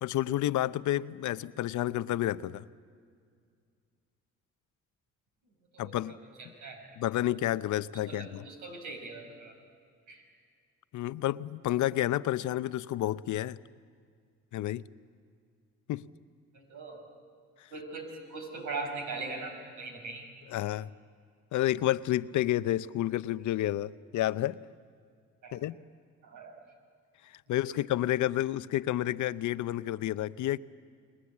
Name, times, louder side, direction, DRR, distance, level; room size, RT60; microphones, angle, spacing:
voice 1, 0.0-2.6 5.8-6.2 7.0-8.4 10.9-13.6 14.5-14.9 15.9-16.0 20.5-20.9 21.5-24.6 25.5-25.7 27.5-30.6, left 14 dB, 75° left, 0.7 m, -30 dB
voice 2, 5.7-6.9 8.1-9.5 10.1-10.2 16.5-17.0 17.7-20.3 25.4-25.6 26.2-26.6, right 3 dB, 80° right, 5.7 m, -41 dB
30.0 x 21.5 x 8.4 m
cardioid pair, 90°, 30 cm